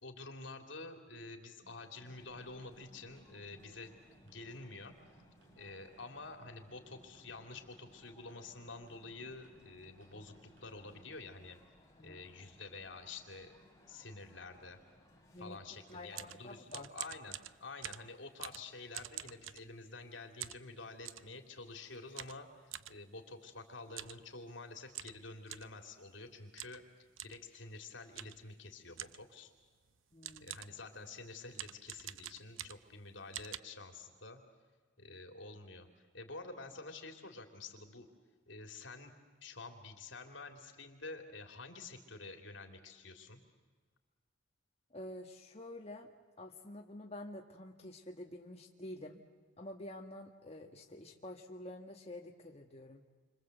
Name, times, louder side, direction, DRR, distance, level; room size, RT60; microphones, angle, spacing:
voice 1, 0.0-4.9 5.6-11.6 12.0-13.5 13.9-14.8 15.4-26.8 27.2-29.5 30.4-34.4 35.0-38.1 38.5-39.2 39.4-43.4, left 3 dB, 70° left, 5 dB, 3.1 m, -49 dB
sound 1, 1.6-11.4, right 1 dB, 65° right, 5.5 m, -65 dB
sound 2, 2.0-15.9, left 1 dB, 15° left, 4.3 m, -65 dB
voice 2, 15.9-16.9 30.1-30.5 44.9-46.1 46.4-49.2 49.6-53.0, left 1 dB, 30° left, 1 dB, 1.5 m, -48 dB
sound 3, 15.9-20.0 20.4-21.3 22.2-23.0 23.9-24.2 24.5-24.6 24.9-25.8 26.6-26.8 27.2-27.4 28.2-28.5 29.0-29.3 29.9-30.0 30.2-30.8 31.5-33.0 33.3-33.6, right 12 dB, 90° right, 0.7 m, -46 dB
28.5 x 25.5 x 8.1 m, 1.4 s
head